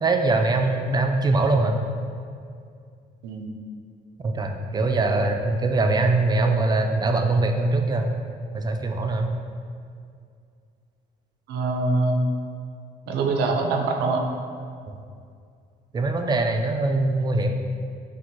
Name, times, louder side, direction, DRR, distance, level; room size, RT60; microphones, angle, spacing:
voice 1, 0.0-1.8 4.2-8.1 8.5-9.3 14.9-15.0 15.9-17.5, right 2 dB, 25° right, 4 dB, 0.4 m, -22 dB
voice 2, 11.5-12.2 13.1-14.3, right 3 dB, 80° right, 3 dB, 0.5 m, -24 dB
5.9 x 2.1 x 3.0 m, 2.3 s
cardioid pair, 90°, 17 cm